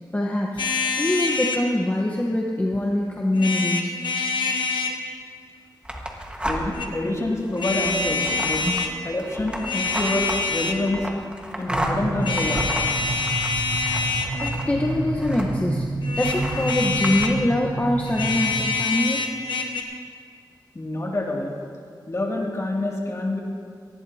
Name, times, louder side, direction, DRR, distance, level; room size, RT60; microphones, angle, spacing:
voice 1, 0.1-0.6 0.9-4.0 8.6-9.0 14.4-15.8 16.1-19.3, left 1 dB, 20° left, -1 dB, 1.1 m, -24 dB
sound 1, 0.6-1.6 3.3-5.0 6.5-6.9 7.6-8.9 9.5-10.9 12.2-14.7 16.0-17.4 18.1-19.8, left 4 dB, 80° left, 1.2 m, -26 dB
sound 2, 5.8-6.9 7.4-15.8 16.2-17.3, right 1 dB, 15° right, 1.6 m, -33 dB
voice 2, 6.4-8.7 9.0-11.1 11.6-12.7 20.7-21.5 22.1-23.4, left 2 dB, 40° left, -2 dB, 2.5 m, -27 dB
sound 3, 11.7-18.8, right 2 dB, 60° right, 0.9 m, -30 dB
19.0 x 15.0 x 2.9 m, 2.2 s
wide cardioid pair, 85°, 8 cm